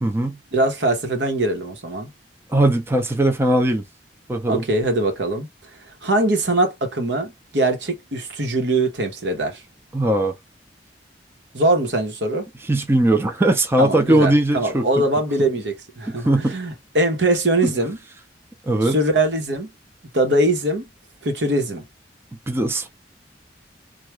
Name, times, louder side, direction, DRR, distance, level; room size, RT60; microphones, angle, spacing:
voice 1, 0.0-0.4 2.5-3.8 4.3-4.6 9.9-10.3 12.6-15.0 16.1-16.6 17.6-17.7 18.7-19.0 22.5-22.9, right 1 dB, 15° right, 0.5 m, -19 dB
voice 2, 0.5-2.1 4.5-5.5 6.0-9.6 11.5-12.5 13.8-18.0 18.8-19.7 20.1-20.9 21.2-21.9, right 1 dB, 75° right, 1.1 m, -22 dB
3.4 x 2.4 x 3.1 m
head